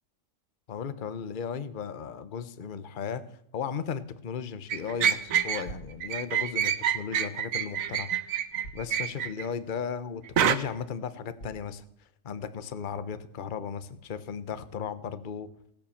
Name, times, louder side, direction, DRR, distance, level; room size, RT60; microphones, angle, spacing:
voice 1, 0.7-3.2 3.5-8.4 8.7-15.5, left 7 dB, 40° left, 13 dB, 0.9 m, -36 dB
sound 1, 4.7-5.7 6.0-9.4 10.4-10.6, right 9 dB, 70° right, 1.2 m, -27 dB
sound 2, 5.6-6.0 7.6-7.7 8.6-9.0 9.6-9.7 10.3-10.4 11.4-11.7, right 2 dB, 70° left, 3.0 m, -45 dB
17.0 x 10.5 x 7.2 m, 0.74 s
omnidirectional pair, 1.5 m